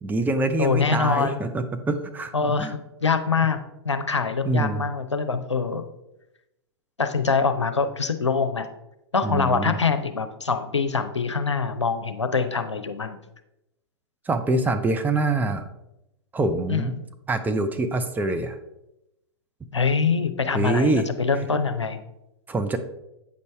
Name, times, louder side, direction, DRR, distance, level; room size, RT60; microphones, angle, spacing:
voice 1, 0.0-2.3 2.6-2.7 4.4-4.8 9.2-9.8 14.3-15.7 16.3-17.0 17.3-18.6 20.5-21.1 22.5-22.8, right 2 dB, 10° right, 7 dB, 0.6 m, -25 dB
voice 2, 0.6-1.4 2.3-3.6 3.8-5.8 7.0-8.7 9.1-13.2 16.7-16.9 19.7-22.0, left 5 dB, 90° left, 8 dB, 0.7 m, -24 dB
8.2 x 5.3 x 3.3 m, 0.88 s
figure-of-eight pair, 105°, 15 cm